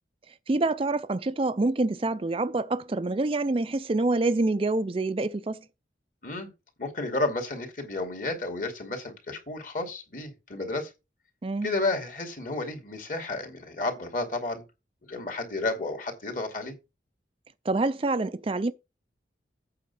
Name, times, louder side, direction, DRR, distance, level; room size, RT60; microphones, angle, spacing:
voice 1, 0.5-5.6 11.4-11.7 17.6-18.7, right 2 dB, 30° right, 0.4 m, -26 dB
voice 2, 6.8-10.9 11.6-14.6 15.0-16.8, left 2 dB, 45° left, 2.6 m, -32 dB
8.5 x 5.6 x 5.5 m
head